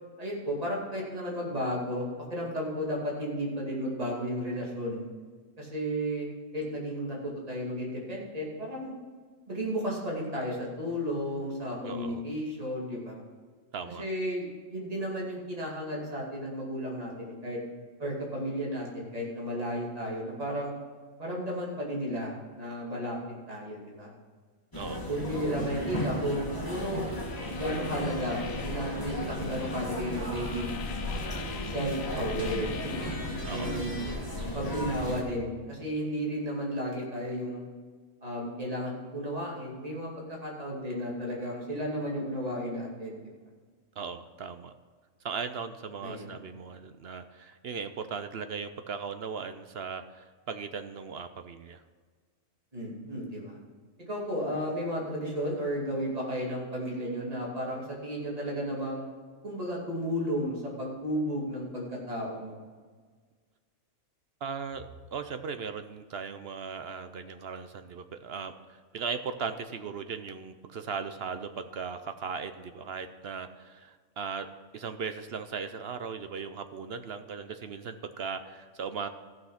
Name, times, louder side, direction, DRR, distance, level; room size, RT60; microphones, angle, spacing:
voice 1, 0.2-5.0 5.6-6.3 6.5-8.9 9.5-13.2 14.0-17.6 18.0-20.7 21.2-23.2 23.5-24.1 25.1-27.0 27.5-30.7 31.6-33.0 33.5-33.9 34.5-37.6 38.2-43.3 46.0-46.4 52.7-53.6 54.1-59.0 59.4-62.6, equal, 30° right, -3 dB, 2.5 m, -33 dB
voice 2, 11.9-12.2 13.7-14.0 24.7-25.2 33.4-33.8 44.0-44.7 45.2-51.8 64.4-74.5 74.7-79.1, right 5 dB, 60° right, 9 dB, 0.7 m, -38 dB
sound 1, 24.7-35.2, left 1 dB, 15° left, 2.2 m, -34 dB
sound 2, 27.1-33.8, left 8 dB, 60° left, 0.6 m, -46 dB
14.5 x 6.2 x 5.7 m, 1.5 s
omnidirectional pair, 1.4 m